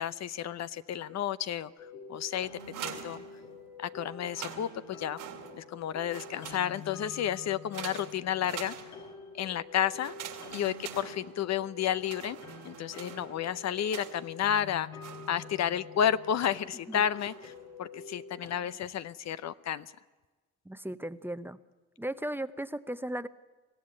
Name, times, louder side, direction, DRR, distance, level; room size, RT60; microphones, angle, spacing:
voice 1, 0.0-1.7 2.1-3.2 3.8-4.7 5.0-5.2 5.6-8.7 9.3-10.1 10.5-12.4 12.6-14.9 15.3-17.5 17.8-19.9, left 9 dB, 60° left, 15 dB, 0.7 m, -31 dB
sound 1, 1.8-18.6, left 4 dB, 85° left, 4.3 m, -47 dB
sound 2, 2.6-3.8 4.2-5.8 6.1-7.1 7.7-9.3 10.0-11.6 12.0-14.4 15.0-15.7 16.4-16.8 17.2-17.7, right 10 dB, 90° right, 2.5 m, -45 dB
voice 2, 20.7-21.6 22.0-23.3, right 1 dB, 5° right, 12 dB, 0.8 m, -36 dB
23.5 x 15.5 x 9.7 m, 1.3 s
cardioid pair, 90°, 30 cm